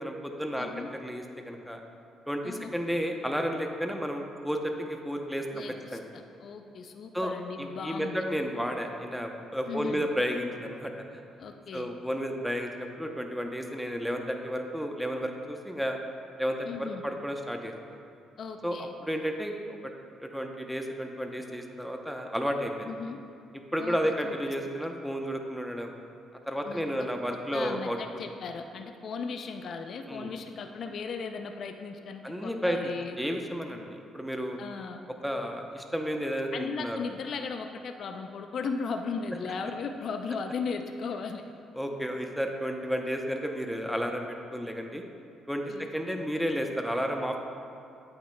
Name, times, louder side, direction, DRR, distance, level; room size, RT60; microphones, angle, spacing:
voice 1, 0.0-1.8 2.3-5.6 5.9-6.0 7.1-7.3 7.6-11.2 11.7-16.0 16.4-18.0 18.6-19.6 19.8-19.9 20.2-22.9 23.7-25.9 26.5-28.0 30.1-30.3 32.2-32.9 33.2-34.6 35.2-37.0 41.7-45.0 45.5-45.6 45.9-47.4, equal, ahead, 3 dB, 0.7 m, -32 dB
voice 2, 0.6-0.9 2.4-2.8 5.5-8.2 9.7-10.1 11.4-11.9 16.6-17.0 18.4-18.9 22.9-23.2 23.8-24.3 26.6-27.1 27.5-33.2 34.6-35.0 36.5-41.4 45.7-45.9, left 5 dB, 60° left, 6 dB, 0.4 m, -37 dB
8.5 x 8.5 x 2.2 m, 2.5 s
cardioid pair, 85°, 0 cm